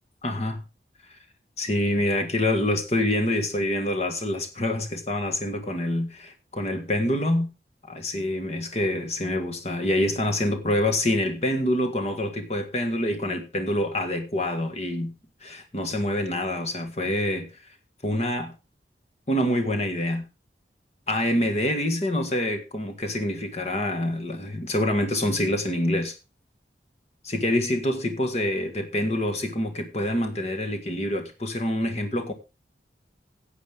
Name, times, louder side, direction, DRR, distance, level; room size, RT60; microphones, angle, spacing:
voice 1, 0.2-0.6 1.6-7.5 7.9-15.1 15.4-17.5 18.0-18.5 19.3-20.2 21.1-26.1 27.2-32.3, left 1 dB, 35° left, 1.7 m, -26 dB
14.5 x 8.4 x 3.5 m
head